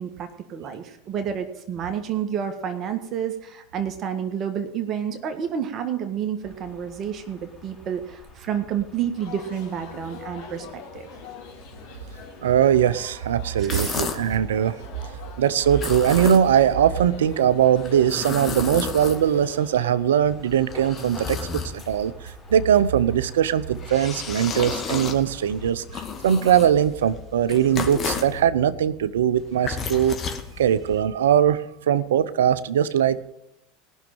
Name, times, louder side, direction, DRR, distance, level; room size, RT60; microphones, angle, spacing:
voice 1, 0.0-11.1 13.6-14.0, right 8 dB, 40° right, 6 dB, 1.7 m, -30 dB
sound 1, 6.4-25.7, left 4 dB, 20° left, 5.3 m, -49 dB
sound 2, 9.1-19.9, left 6 dB, 70° left, 3.9 m, -44 dB
voice 2, 12.4-14.8 15.4-25.8 26.2-30.2 30.6-33.2, right 9 dB, 80° right, 15 dB, 0.7 m, -21 dB
sound 3, 13.5-14.4 15.7-16.7 17.8-19.5 20.3-22.1 23.5-28.4 29.4-31.0, left 5 dB, 35° left, 2.3 m, -33 dB
18.5 x 6.5 x 8.9 m, 0.86 s
hypercardioid pair, 85°, 0 cm